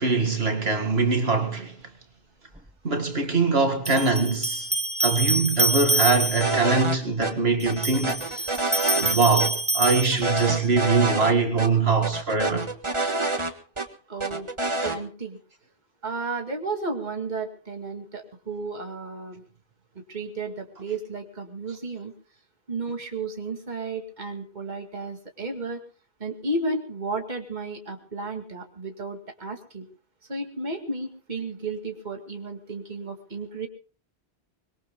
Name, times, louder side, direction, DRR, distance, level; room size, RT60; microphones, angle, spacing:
voice 1, 0.0-1.8 2.8-4.7 5.0-8.7 8.9-12.7, right 4 dB, 70° right, 2.2 m, -23 dB
sound 1, 2.6-2.7 3.8-6.7 7.6-10.7, right 2 dB, 5° right, 0.9 m, -26 dB
sound 2, 6.4-7.0 7.2-7.3 7.7-9.1 9.4-9.5 9.8-11.3 11.6-11.7 12.0-13.9 14.2-15.0, right 2 dB, 25° right, 1.6 m, -27 dB
voice 2, 14.1-14.5 14.8-15.4 16.0-19.4 20.0-22.1 22.7-25.8 26.2-29.9 30.3-33.7, right 3 dB, 45° right, 2.3 m, -33 dB
24.5 x 22.0 x 2.2 m
omnidirectional pair, 1.1 m